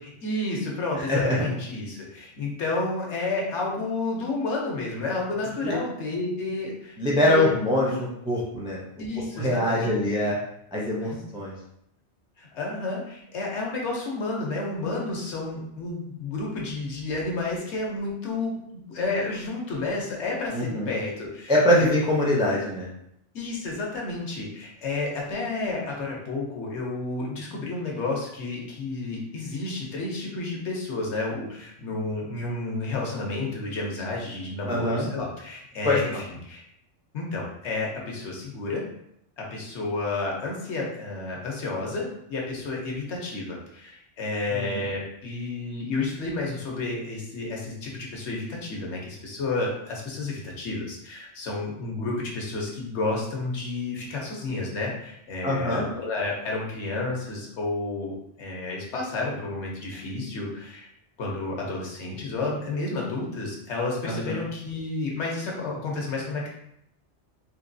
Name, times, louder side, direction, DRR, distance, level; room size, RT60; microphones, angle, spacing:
voice 1, 0.0-7.5 9.0-10.3 11.0-11.2 12.4-21.9 23.3-36.6 37.1-38.8 39.4-60.9 61.2-66.5, left 3 dB, 65° left, -2 dB, 1.1 m, -31 dB
voice 2, 1.1-1.4 5.6-5.8 7.0-8.8 9.3-10.4 10.7-11.5 20.5-21.0 21.5-22.9 34.7-35.1 35.8-36.0 44.5-44.6 55.4-55.9 64.1-64.4, left 1 dB, 5° right, -4 dB, 0.3 m, -23 dB
3.3 x 2.9 x 2.6 m, 0.76 s
omnidirectional pair, 1.3 m